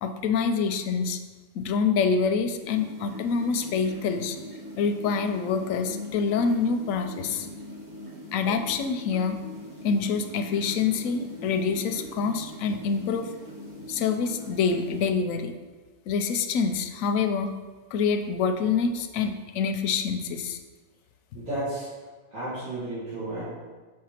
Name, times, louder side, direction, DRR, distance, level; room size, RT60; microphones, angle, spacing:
voice 1, 0.0-1.2 1.5-4.4 4.8-7.5 8.3-9.4 9.8-13.3 13.9-15.5 16.1-17.5 17.9-20.6, left 5 dB, 90° left, 8 dB, 1.0 m, -26 dB
sound 1, 2.6-15.1, left 1 dB, 20° right, 0.8 m, -41 dB
voice 2, 21.3-21.9 22.3-23.4, right 1 dB, 80° right, -13 dB, 2.2 m, -33 dB
5.8 x 3.3 x 5.6 m, 1.3 s
omnidirectional pair, 1.4 m